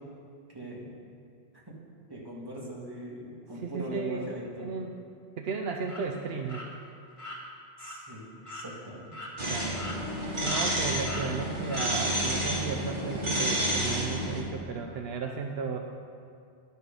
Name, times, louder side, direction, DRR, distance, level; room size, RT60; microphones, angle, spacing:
voice 1, 0.5-0.9 2.1-4.8 7.8-9.1, right 1 dB, 20° right, -4 dB, 1.7 m, -40 dB
voice 2, 3.6-4.3 4.6-5.0 5.4-6.7 9.5-9.9 10.4-15.8, right 5 dB, 70° right, 3 dB, 0.8 m, -34 dB
sound 1, 5.8-6.0 6.5-6.7 7.2-7.4 7.8-8.0 8.5-8.7 9.1-9.3 9.7-10.2 10.4-10.7 11.1-11.3 11.7-11.9, left 1 dB, 30° left, 1.7 m, -40 dB
sound 2, 9.4-14.4, right 1 dB, 50° right, 1.8 m, -30 dB
11.0 x 6.8 x 5.2 m, 2.4 s
omnidirectional pair, 1.1 m